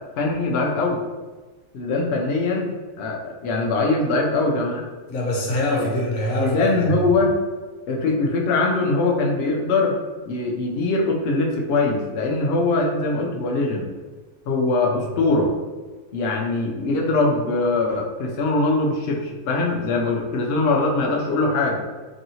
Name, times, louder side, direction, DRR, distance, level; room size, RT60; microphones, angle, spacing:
voice 1, 0.2-1.0 1.7-2.7 3.0-4.9 5.7-5.9 6.3-7.4 7.9-9.9 10.3-13.9 14.5-15.5 16.1-21.8, left 3 dB, 85° left, 0 dB, 0.5 m, -22 dB
voice 2, 5.1-7.0 15.0-15.1, left 1 dB, 60° left, -2 dB, 1.0 m, -24 dB
3.1 x 2.7 x 2.8 m, 1.3 s
omnidirectional pair, 1.6 m